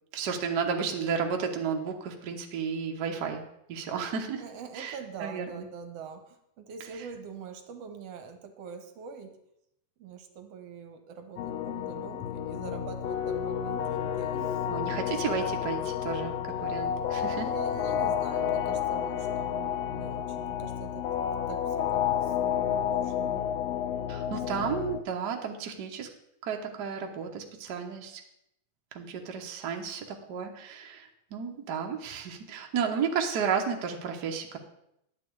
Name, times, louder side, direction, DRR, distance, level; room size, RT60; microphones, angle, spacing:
voice 1, 0.1-3.4 3.7-4.4 4.7-5.7 14.7-17.5 24.1-26.1 26.4-28.2 28.9-34.6, right 6 dB, 80° right, 3 dB, 0.9 m, -33 dB
voice 2, 4.4-9.4 10.0-14.6 17.2-21.1 21.5-23.4 24.3-24.9, right 6 dB, 65° right, 7 dB, 1.8 m, -44 dB
sound 1, 11.4-25.0, left 9 dB, 90° left, 1.4 m, -30 dB
11.0 x 8.3 x 4.7 m, 0.78 s
omnidirectional pair, 3.6 m